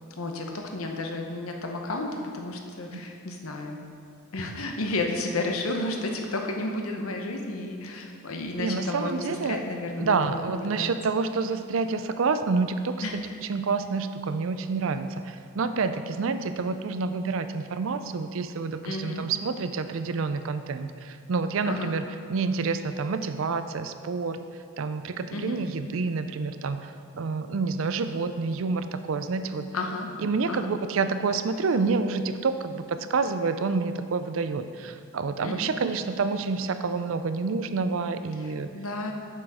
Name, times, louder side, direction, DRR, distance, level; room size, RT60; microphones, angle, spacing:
voice 1, 0.2-3.8 4.3-10.9 13.0-13.2 18.8-19.2 21.6-21.9 25.3-25.6 29.7-30.1 30.5-30.7 35.4-35.7 38.4-39.1, left 2 dB, 70° left, 2 dB, 0.9 m, -32 dB
voice 2, 8.6-9.6 10.0-13.2 13.5-24.4 24.8-29.7 30.2-38.7, right 4 dB, 60° right, 10 dB, 0.4 m, -28 dB
7.4 x 7.0 x 5.0 m, 2.5 s
head